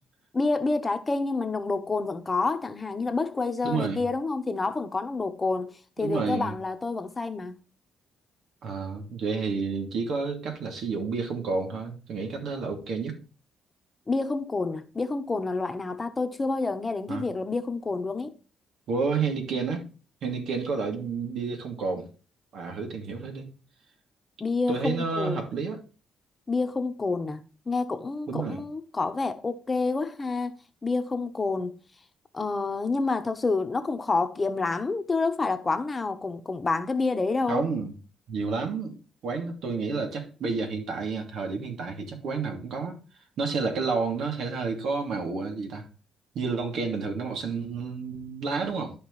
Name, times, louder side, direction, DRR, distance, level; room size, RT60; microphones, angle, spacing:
voice 1, 0.3-7.6 14.1-18.3 24.4-25.4 26.5-30.6 30.8-31.8 32.3-37.7, left 3 dB, 25° left, 1.1 m, -28 dB
voice 2, 3.6-4.0 6.0-6.5 8.6-13.2 17.1-17.3 18.9-19.9 20.2-22.1 22.5-23.5 24.7-25.8 28.3-28.6 37.5-37.9 38.3-39.0 39.2-43.0 43.4-45.9 46.3-48.9, right 4 dB, 70° right, 2.7 m, -30 dB
12.5 x 5.0 x 3.2 m
cardioid pair, 90°, 0 cm